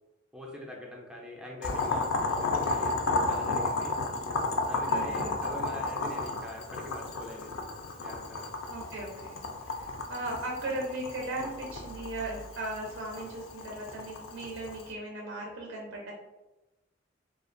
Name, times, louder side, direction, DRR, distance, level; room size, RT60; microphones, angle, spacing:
voice 1, 0.3-3.0 3.2-4.0 4.6-7.6 8.0-8.6, left 1 dB, 5° right, -2 dB, 0.3 m, -43 dB
Boiling, 1.6-14.9, left 3 dB, 80° left, 0.3 m, -33 dB
voice 2, 4.9-5.4 8.7-9.4 9.7-16.1, right 2 dB, 80° right, -2 dB, 0.5 m, -37 dB
2.3 x 2.1 x 2.5 m, 1.0 s
head